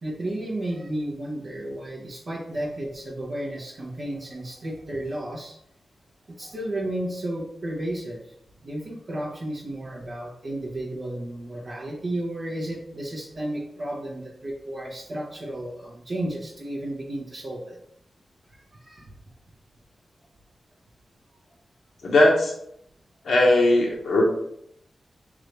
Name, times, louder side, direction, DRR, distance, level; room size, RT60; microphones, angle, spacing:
voice 1, 0.0-5.5 6.3-8.2 8.6-17.8 18.8-19.1, right 1 dB, 65° right, -7 dB, 1.1 m, -33 dB
voice 2, 22.0-22.5 23.2-24.2, left 1 dB, 85° left, -2 dB, 1.0 m, -18 dB
3.7 x 3.2 x 3.3 m, 0.72 s
cardioid pair, 55°, 0 cm